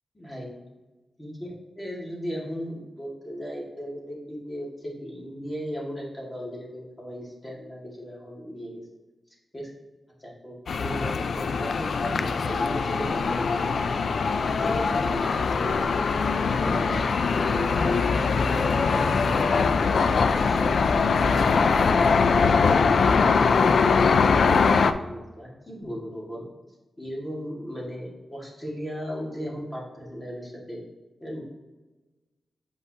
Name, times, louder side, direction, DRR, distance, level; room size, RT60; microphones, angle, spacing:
voice 1, 0.1-0.5 1.2-8.8 9.5-9.7 10.2-13.7 14.4-16.0 16.6-17.1 17.4-20.0 23.6-26.5 27.0-30.8 31.2-31.4, equal, 20° left, -4 dB, 2.0 m, -37 dB
sound 1, 10.7-24.9, left 5 dB, 65° left, 0.3 m, -22 dB
8.0 x 5.4 x 2.8 m, 1.2 s
wide cardioid pair, 160°, 0 cm